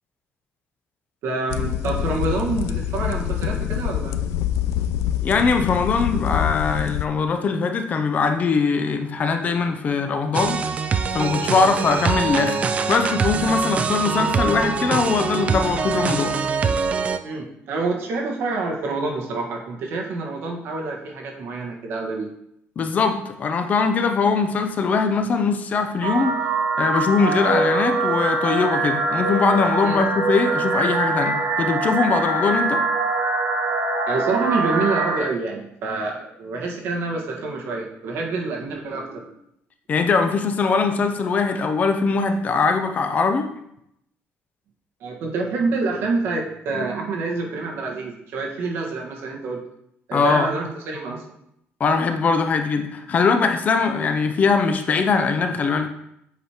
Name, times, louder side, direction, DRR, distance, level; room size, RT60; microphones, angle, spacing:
voice 1, 1.2-4.2 11.5-11.7 17.2-22.3 29.8-30.0 34.1-39.4 45.0-49.6 50.1-51.2, right 3 dB, 65° right, -1 dB, 1.5 m, -27 dB
sound 1, 1.5-7.1, left 11 dB, 85° left, 0.4 m, -25 dB
voice 2, 5.2-10.6 11.1-12.6 12.9-16.3 22.8-26.4 26.8-32.8 39.9-43.5 50.1-50.5 51.8-55.9, left 4 dB, 35° left, 7 dB, 0.6 m, -21 dB
sound 2, 10.3-17.2, right 5 dB, 30° right, 0.4 m, -23 dB
sound 3, 26.0-35.2, right 3 dB, 85° right, 1.1 m, -23 dB
7.9 x 4.9 x 3.0 m, 0.77 s
cardioid pair, 150°, 4 cm